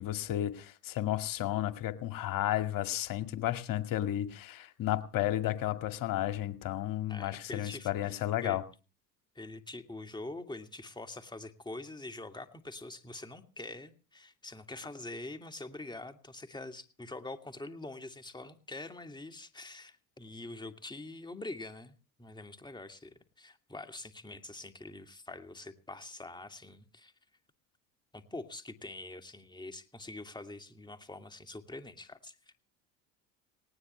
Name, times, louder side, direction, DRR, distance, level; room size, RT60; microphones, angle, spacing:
voice 1, 0.0-8.6, left 13 dB, 55° left, 8 dB, 2.2 m, -33 dB
voice 2, 7.1-8.6 9.4-27.1 28.1-32.4, left 2 dB, 10° left, 7 dB, 2.4 m, -45 dB
19.0 x 18.0 x 3.3 m, 0.36 s
hypercardioid pair, 75°, 40 cm